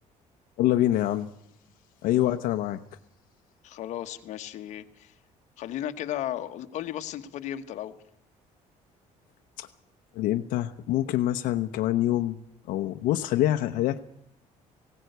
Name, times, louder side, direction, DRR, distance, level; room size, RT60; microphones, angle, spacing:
voice 1, 0.6-1.3 2.0-2.8 9.6-9.7 10.1-12.4 12.7-14.0, left 13 dB, 85° left, 7 dB, 0.9 m, -25 dB
voice 2, 3.6-5.1 5.6-8.0, left 11 dB, 60° left, 7 dB, 1.3 m, -35 dB
19.0 x 17.0 x 8.1 m, 0.72 s
cardioid pair, 160°, 14 cm